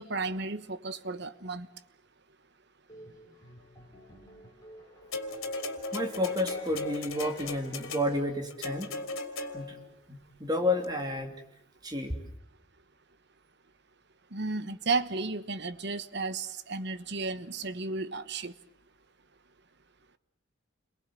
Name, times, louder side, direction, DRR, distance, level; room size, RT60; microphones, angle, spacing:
voice 1, 0.0-1.7 14.3-18.5, right 3 dB, 55° right, 12 dB, 1.2 m, -33 dB
sound 1, 2.9-8.4, left 1 dB, 15° left, 6.5 m, -51 dB
sound 2, 5.1-9.9 10.8-10.9, left 3 dB, 85° left, 3.2 m, -37 dB
voice 2, 5.9-8.9 9.5-9.8 10.1-11.3 11.8-12.2, left 1 dB, 20° right, 4 dB, 3.0 m, -31 dB
29.5 x 23.0 x 7.7 m, 0.75 s
head